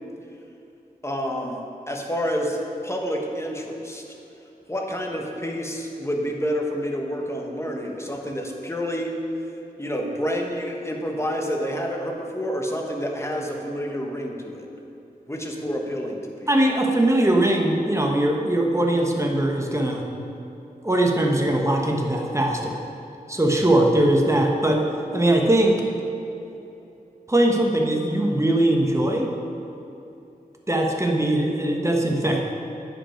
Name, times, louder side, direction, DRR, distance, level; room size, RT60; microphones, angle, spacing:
voice 1, 1.0-4.0 4.7-9.1 9.8-14.7 15.3-16.5, equal, 15° left, 1 dB, 1.3 m, -28 dB
voice 2, 16.5-20.0 20.8-22.8 23.3-24.8 25.1-25.8 27.3-29.3 30.7-32.4, right 1 dB, 20° right, 1 dB, 1.2 m, -21 dB
9.7 x 5.5 x 4.5 m, 2.9 s
cardioid pair, 40°, 16 cm